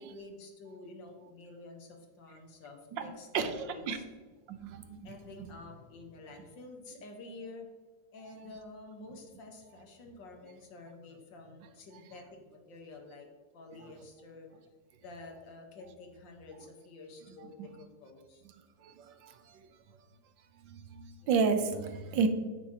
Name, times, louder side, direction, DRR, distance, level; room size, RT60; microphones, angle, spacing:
voice 1, 0.0-4.0 5.0-7.7 8.1-13.3 13.5-14.5 15.0-18.4 21.2-21.3 21.7-22.3, left 2 dB, 80° left, 3 dB, 2.0 m, -49 dB
voice 2, 2.9-4.0 4.5-5.5 17.4-17.7 18.8-19.6 20.6-22.3, right 5 dB, 80° right, 8 dB, 1.5 m, -33 dB
9.0 x 8.0 x 2.9 m, 1.4 s
omnidirectional pair, 2.0 m